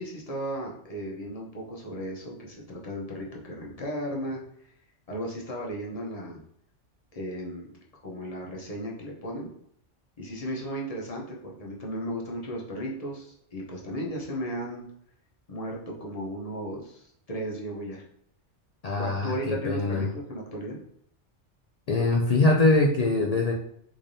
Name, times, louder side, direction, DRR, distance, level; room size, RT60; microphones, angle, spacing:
voice 1, 0.0-4.7 5.1-6.4 7.1-7.7 8.0-9.5 10.2-14.8 15.5-18.0 19.0-20.8, equal, 35° left, -2 dB, 0.7 m, -35 dB
voice 2, 18.8-20.1 21.9-23.5, left 2 dB, 65° left, 0 dB, 0.3 m, -23 dB
3.7 x 3.3 x 2.6 m, 0.69 s
omnidirectional pair, 1.2 m